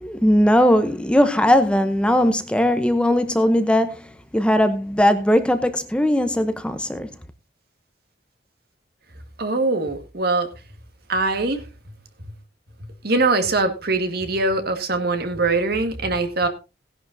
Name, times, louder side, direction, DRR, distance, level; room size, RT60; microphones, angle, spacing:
voice 1, 0.0-7.1, equal, 5° left, 0.8 m, -19 dB
voice 2, 9.4-10.5 11.1-11.6 13.0-16.5, right 3 dB, 60° right, 1.8 m, -22 dB
17.0 x 11.0 x 2.7 m
head